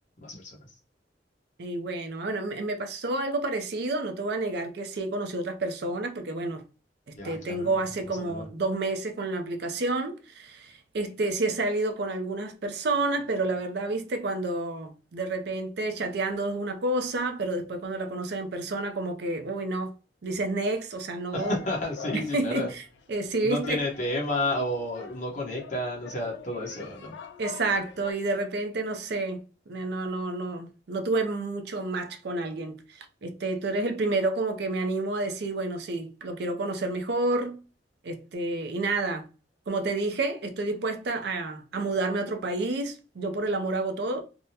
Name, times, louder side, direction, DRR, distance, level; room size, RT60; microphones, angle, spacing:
voice 1, 0.2-0.7 7.1-7.8 8.1-8.5 21.3-22.7 23.4-27.1, left 1 dB, 45° left, 1.1 m, -31 dB
voice 2, 1.6-6.6 7.2-19.9 20.2-21.5 22.1-22.8 23.1-23.8 27.4-37.6 38.0-39.2 39.7-44.2, right 2 dB, 65° right, 0.5 m, -29 dB
sound 1, 21.4-28.1, left 4 dB, 75° left, 0.4 m, -44 dB
3.5 x 2.1 x 2.7 m
head